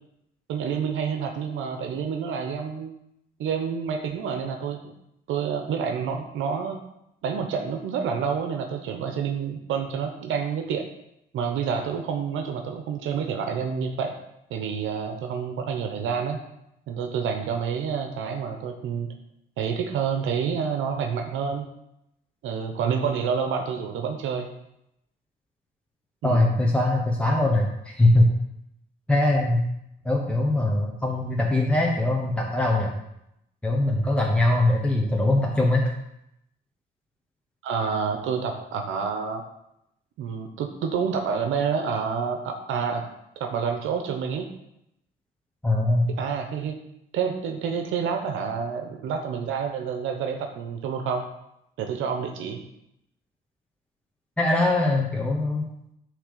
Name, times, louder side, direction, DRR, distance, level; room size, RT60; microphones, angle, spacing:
voice 1, 0.5-2.9 3.4-4.9 5.3-6.8 7.2-10.9 11.3-14.1 14.5-16.4 16.9-19.1 19.6-21.6 22.4-24.5 26.2-26.5 37.6-39.4 40.2-43.0 43.4-44.5 46.2-46.8 47.1-51.2 51.8-52.6, right 6 dB, 85° right, 4 dB, 0.9 m, -28 dB
voice 2, 26.2-28.3 29.1-29.6 30.0-33.0 33.6-35.8 45.6-46.1 54.4-55.6, left 1 dB, 5° left, -2 dB, 1.3 m, -22 dB
10.0 x 3.4 x 6.7 m, 0.82 s
cardioid pair, 90°, 20 cm